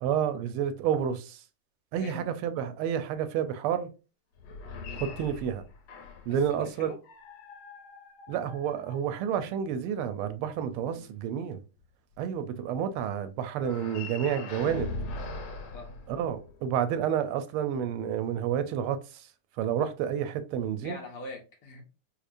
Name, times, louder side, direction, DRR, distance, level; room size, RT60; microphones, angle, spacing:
voice 1, 0.0-1.4 1.9-3.9 5.0-5.6 6.3-6.9 8.3-11.6 12.2-14.9 16.1-19.3 19.6-21.0, right 9 dB, 90° right, 1.5 m, -30 dB
voice 2, 2.0-2.3 4.8-5.0 6.3-7.0 10.9-11.1 15.7-15.9 20.8-21.8, left 2 dB, 60° left, 1.3 m, -43 dB
sound 1, 4.4-6.4 7.0-9.4 13.5-16.7, left 3 dB, 80° left, 1.6 m, -41 dB
4.3 x 2.5 x 2.5 m
omnidirectional pair, 2.3 m